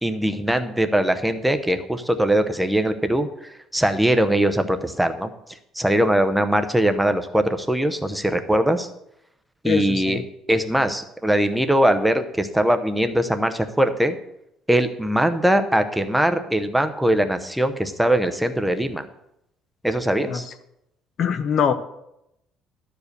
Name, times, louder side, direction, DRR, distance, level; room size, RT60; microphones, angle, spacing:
voice 1, 0.0-5.3 5.8-8.9 9.6-10.2 10.5-14.1 14.7-19.1 19.8-20.4, right 1 dB, 5° right, 8 dB, 0.7 m, -21 dB
voice 2, 9.6-10.2 20.3-20.4 21.2-21.7, left 7 dB, 45° left, 11 dB, 0.7 m, -22 dB
12.0 x 4.9 x 6.6 m, 0.83 s
cardioid pair, 150°, 0 cm